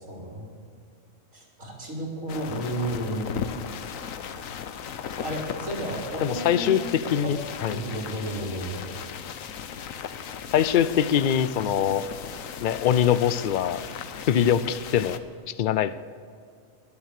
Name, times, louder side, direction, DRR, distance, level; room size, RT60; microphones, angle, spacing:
voice 1, 0.1-0.5 1.3-3.2 5.2-6.7 7.2-7.3 7.7-8.8, right 1 dB, 70° right, -3 dB, 4.1 m, -32 dB
sound 1, 2.3-15.2, left 7 dB, 80° left, 1.2 m, -37 dB
voice 2, 6.2-6.8 7.1-7.8 10.5-12.0 12.6-13.8 14.3-15.2 15.5-16.0, left 9 dB, 60° left, 15 dB, 0.5 m, -23 dB
21.5 x 7.1 x 6.6 m, 2.2 s
omnidirectional pair, 1.4 m